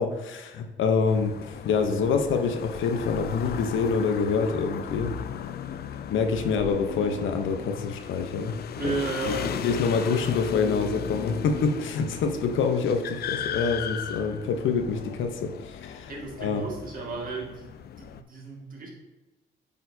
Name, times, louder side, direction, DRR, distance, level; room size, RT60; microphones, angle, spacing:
voice 1, 0.0-5.1 6.1-8.5 8.8-8.9 9.3-16.1 16.4-16.6, left 5 dB, 75° left, 6 dB, 0.8 m, -26 dB
sound 1, 1.1-18.2, left 9 dB, 55° left, 0.4 m, -36 dB
voice 2, 8.7-10.7 16.1-17.7 18.0-18.9, right 3 dB, 45° right, -2 dB, 2.0 m, -34 dB
8.4 x 4.3 x 2.7 m, 1.1 s
cardioid pair, 90°, 20 cm